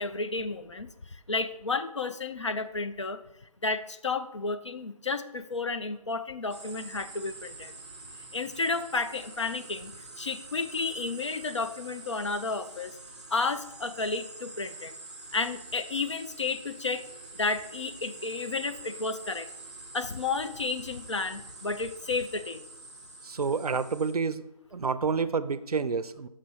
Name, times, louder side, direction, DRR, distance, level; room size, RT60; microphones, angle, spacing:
voice 1, 0.0-3.2 3.6-7.7 8.3-13.0 13.3-15.0 15.3-17.0 17.4-19.5 19.9-22.6, left 3 dB, 50° left, 10 dB, 0.5 m, -32 dB
sound 1, 6.5-24.1, right 2 dB, 15° right, 0.6 m, -46 dB
voice 2, 23.2-24.5 24.7-26.3, right 5 dB, 80° right, 13 dB, 0.5 m, -29 dB
6.2 x 4.2 x 6.2 m, 0.84 s
figure-of-eight pair, 165°, 19 cm